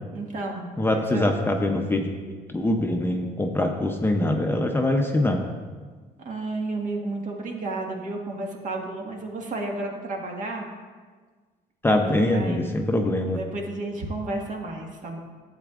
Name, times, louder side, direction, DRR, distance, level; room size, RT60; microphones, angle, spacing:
voice 1, 0.1-1.3 6.2-10.6 12.0-12.9 13.3-15.2, right 2 dB, 50° right, 0 dB, 1.6 m, -32 dB
voice 2, 0.8-2.1 2.5-5.4 11.8-13.4, left 1 dB, 15° left, 3 dB, 0.6 m, -23 dB
12.0 x 8.0 x 2.5 m, 1.5 s
cardioid pair, 110°, 17 cm